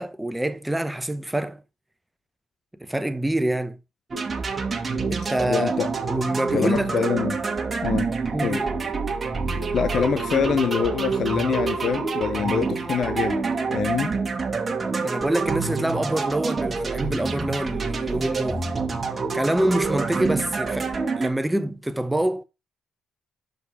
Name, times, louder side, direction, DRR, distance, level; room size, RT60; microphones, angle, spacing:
voice 1, 0.0-1.6 2.8-3.8 5.1-5.7 6.1-6.9 8.3-8.7 15.0-18.6 19.3-22.4, right 1 dB, 10° right, 0.9 m, -26 dB
sound 1, 4.1-21.3, right 4 dB, 35° right, 1.5 m, -27 dB
voice 2, 5.5-5.9 6.5-7.4 7.8-8.1 8.4-8.6 9.7-13.4 13.7-14.1, left 7 dB, 60° left, 0.8 m, -25 dB
6.5 x 5.3 x 4.8 m
supercardioid pair, 65°, 0 cm